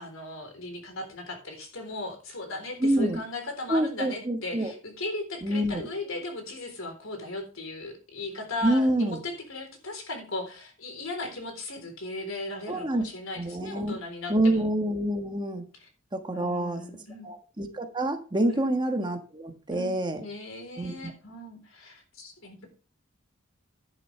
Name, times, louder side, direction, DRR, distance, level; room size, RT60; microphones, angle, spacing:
voice 1, 0.0-14.6 16.3-17.3 18.5-18.7 19.7-22.7, left 2 dB, 75° left, 5 dB, 3.9 m, -37 dB
voice 2, 2.8-3.2 3.7-4.7 5.4-5.9 8.6-9.2 12.7-13.0 13.4-14.0 14.3-15.6 16.1-16.9 17.2-20.2 20.8-21.1, right 1 dB, 20° right, 5 dB, 1.5 m, -27 dB
11.0 x 10.5 x 3.4 m, 0.34 s
head